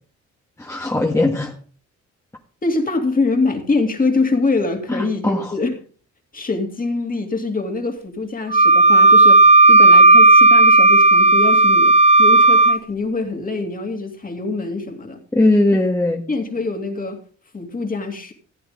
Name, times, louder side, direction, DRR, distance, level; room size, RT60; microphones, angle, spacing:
voice 1, 0.6-1.5 4.9-5.6 15.3-16.2, left 2 dB, 10° left, 0 dB, 1.5 m, -19 dB
voice 2, 2.6-5.8 6.3-9.4 9.7-15.2 16.3-17.2 17.5-18.3, left 3 dB, 30° left, 4 dB, 2.5 m, -24 dB
Wind instrument woodwind instrument, 8.5-12.8, right 2 dB, 20° right, 0.8 m, -11 dB
15.5 x 8.7 x 3.7 m, 0.41 s
cardioid pair, 90°, 30 cm